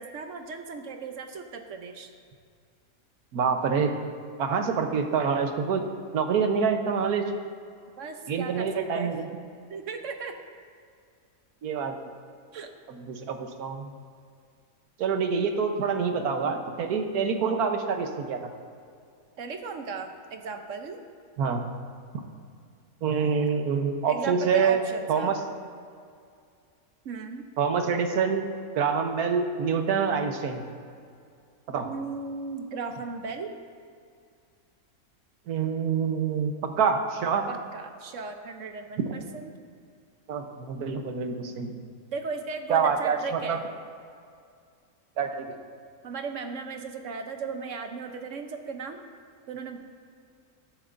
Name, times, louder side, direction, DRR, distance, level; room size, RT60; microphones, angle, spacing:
voice 1, 0.0-2.1 8.0-9.1 9.7-10.4 12.5-12.7 19.4-21.0 23.1-23.5 24.1-25.4 27.0-27.5 31.8-33.5 37.5-39.5 42.1-43.6 46.0-49.0 49.5-49.8, right 4 dB, 60° right, 6 dB, 1.0 m, -36 dB
voice 2, 3.3-3.9 4.4-5.8 6.1-7.3 8.3-9.3 11.6-11.9 12.9-13.9 15.0-18.5 21.4-21.6 23.0-24.8 25.1-25.4 27.6-28.4 28.7-30.7 31.7-31.9 35.5-37.5 40.3-41.8 42.7-43.6 45.2-45.5, right 6 dB, 85° right, 5 dB, 1.4 m, -26 dB
20.5 x 7.8 x 2.6 m, 2.3 s
omnidirectional pair, 1.6 m